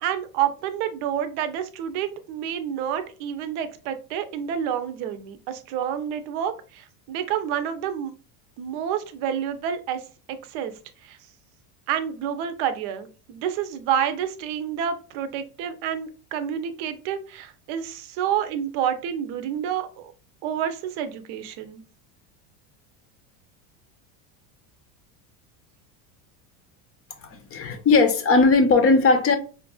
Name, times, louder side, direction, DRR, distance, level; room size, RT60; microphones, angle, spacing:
voice 1, 0.0-8.1 8.6-10.0 10.3-10.7 11.0-11.2 11.9-20.1 20.4-21.8, right 9 dB, 60° right, 0.7 m, -29 dB
voice 2, 27.2-29.4, left 3 dB, 30° left, 0.6 m, -18 dB
4.5 x 2.5 x 2.3 m
supercardioid pair, 120°, 46 cm